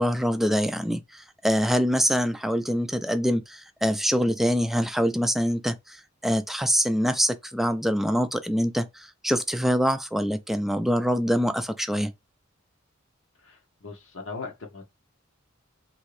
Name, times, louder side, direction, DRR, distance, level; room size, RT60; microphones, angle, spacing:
voice 1, 0.0-12.1, equal, ahead, 0.3 m, -25 dB
voice 2, 13.8-15.0, left 4 dB, 70° left, 0.9 m, -39 dB
2.9 x 2.7 x 3.2 m
head